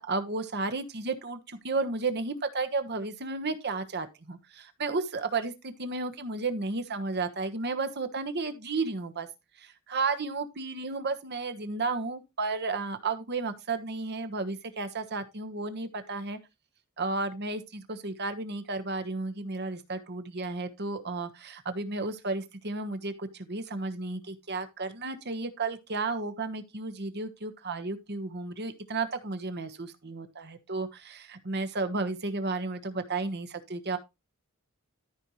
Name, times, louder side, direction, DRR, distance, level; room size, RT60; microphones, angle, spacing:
voice 1, 0.0-9.3 9.6-16.4 17.0-34.0, right 3 dB, 50° right, 1.3 m, -33 dB
13.5 x 5.3 x 3.1 m
head